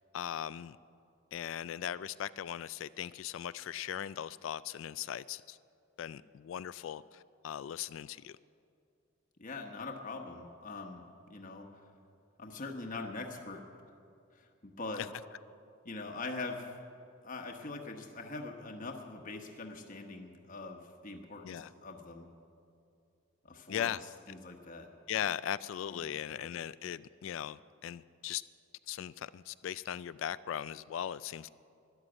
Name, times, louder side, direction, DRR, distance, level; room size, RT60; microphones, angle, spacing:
voice 1, 0.1-0.8 1.3-5.6 6.0-8.4 15.0-15.1 21.4-21.7 23.7-24.0 25.1-28.4 28.9-31.5, left 10 dB, 70° left, 16 dB, 0.3 m, -38 dB
voice 2, 9.4-11.0 11.3-11.8 12.4-13.6 14.3-15.1 15.8-16.7 17.2-22.3 23.4-24.0 24.3-24.9 25.9-26.1, left 3 dB, 40° left, 2 dB, 1.1 m, -43 dB
13.0 x 11.5 x 8.6 m, 2.5 s
head